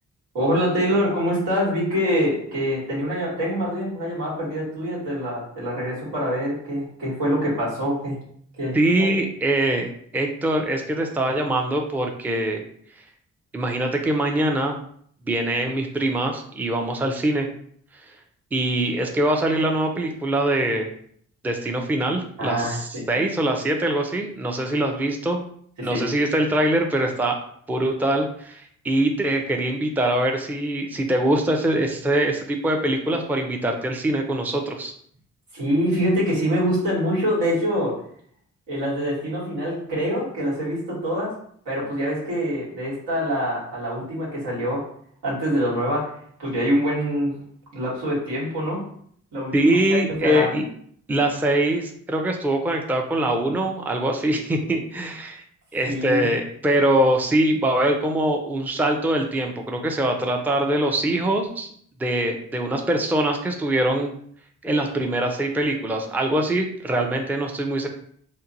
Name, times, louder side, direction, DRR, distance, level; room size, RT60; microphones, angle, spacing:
voice 1, 0.3-8.2 8.6-9.1 22.4-23.0 25.8-26.0 35.5-38.0 38.7-41.3 41.6-44.8 45.2-46.1 46.4-47.4 47.7-48.8 49.3-50.5 55.8-56.3, equal, 90° right, -6 dB, 1.3 m, -25 dB
voice 2, 8.7-9.9 10.1-12.6 13.5-14.8 15.3-17.5 18.5-20.9 21.4-25.4 25.8-27.4 27.7-34.9 49.5-50.6 51.1-55.4 55.7-61.7 62.0-64.1 64.6-67.9, right 1 dB, 5° right, 3 dB, 0.4 m, -23 dB
2.7 x 2.1 x 2.7 m, 0.63 s
supercardioid pair, 50°, 34 cm